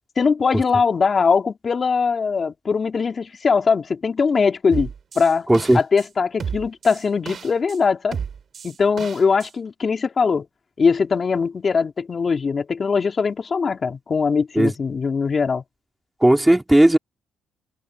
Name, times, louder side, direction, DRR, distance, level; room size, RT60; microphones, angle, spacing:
voice 1, 0.2-4.9 5.2-5.5 5.7-8.2 8.6-10.5 10.8-15.6, left 5 dB, 40° left, 3.4 m, -21 dB
sound 1, 4.7-6.1 6.4-7.8 8.1-9.5, right 7 dB, 50° right, 5.6 m, -32 dB
voice 2, 5.5-5.8 14.5-14.7 16.2-17.0, right 1 dB, 10° right, 3.2 m, -15 dB
cardioid pair, 90°, 0 cm